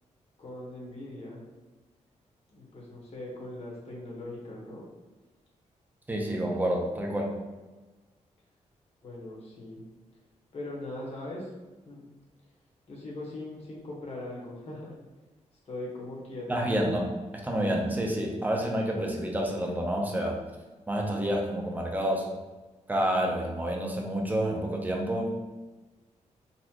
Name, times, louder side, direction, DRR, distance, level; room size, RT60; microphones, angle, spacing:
voice 1, 0.4-1.5 2.5-4.9 9.0-9.8 10.5-11.5 11.8-12.1 12.9-14.9 15.6-16.6, left 1 dB, 55° left, -4 dB, 1.2 m, -40 dB
voice 2, 6.1-7.3 16.5-20.4 20.9-22.3 22.9-25.3, right 1 dB, 15° right, 0 dB, 0.7 m, -29 dB
4.1 x 2.5 x 3.0 m, 1.2 s
cardioid pair, 100°, 13 cm